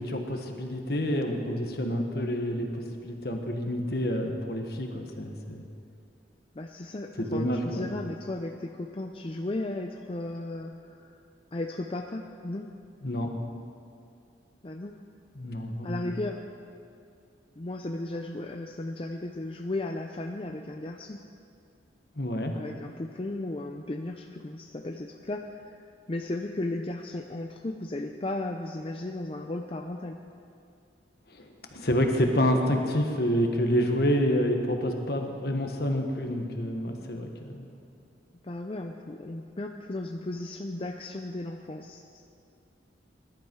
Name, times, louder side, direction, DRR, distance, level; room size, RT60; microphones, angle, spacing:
voice 1, 0.0-5.6 7.2-7.9 13.0-13.3 15.3-16.0 22.1-22.5 31.3-37.7, equal, 60° left, 3 dB, 1.5 m, -28 dB
voice 2, 6.6-11.2 11.5-12.7 14.6-15.0 15.8-16.4 17.6-21.2 22.5-25.8 26.1-30.2 38.4-42.2, left 2 dB, 30° left, 3 dB, 0.5 m, -35 dB
20.5 x 11.5 x 4.7 m, 2.5 s
head